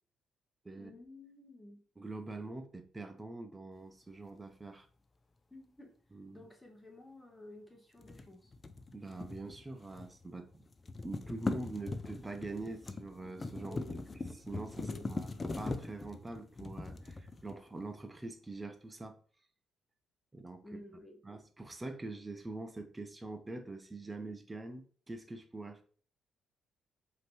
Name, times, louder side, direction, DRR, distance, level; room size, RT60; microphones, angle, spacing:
voice 1, 0.7-1.8 5.5-5.9 6.3-8.5 13.6-14.0 14.8-15.1 20.6-21.2, left 1 dB, 10° left, 1.2 m, -52 dB
voice 2, 2.0-4.9 6.1-6.4 8.9-10.6 11.0-13.8 14.5-19.2 20.3-20.6 21.2-25.8, right 2 dB, 15° right, 0.6 m, -44 dB
sound 1, 8.0-10.2 10.5-17.8, left 3 dB, 30° left, 0.4 m, -41 dB
5.0 x 3.0 x 3.0 m
cardioid pair, 90°, 0 cm